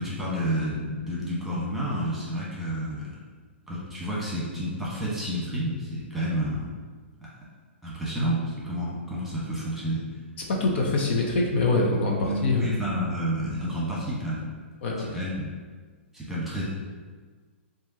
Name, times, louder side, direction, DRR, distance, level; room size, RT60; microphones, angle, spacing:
voice 1, 0.0-3.2 3.7-6.7 7.8-10.0 12.2-14.5 15.0-15.5 16.1-16.6, equal, ahead, -7 dB, 1.4 m, -30 dB
voice 2, 10.5-12.7 14.8-15.1, left 2 dB, 60° left, -1 dB, 0.8 m, -24 dB
7.0 x 2.6 x 2.8 m, 1.5 s
hypercardioid pair, 125°, 7 cm